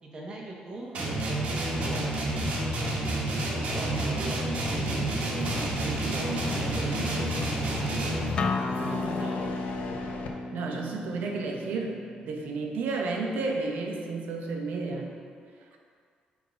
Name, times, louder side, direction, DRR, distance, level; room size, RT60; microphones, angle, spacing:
voice 1, 0.0-2.8 3.4-7.3 7.8-8.2 8.6-9.7, right 2 dB, 30° right, -2 dB, 1.1 m, -41 dB
sound 1, 0.9-8.5, right 1 dB, 55° right, 1.3 m, -29 dB
sound 2, 4.7-10.3, left 5 dB, 65° left, 0.7 m, -38 dB
Acoustic guitar, 8.4-13.6, left 3 dB, 35° left, 0.4 m, -34 dB
voice 2, 10.5-15.1, right 3 dB, 75° right, 1 dB, 1.0 m, -32 dB
9.2 x 3.7 x 5.2 m, 2.1 s
cardioid pair, 170°, 3 cm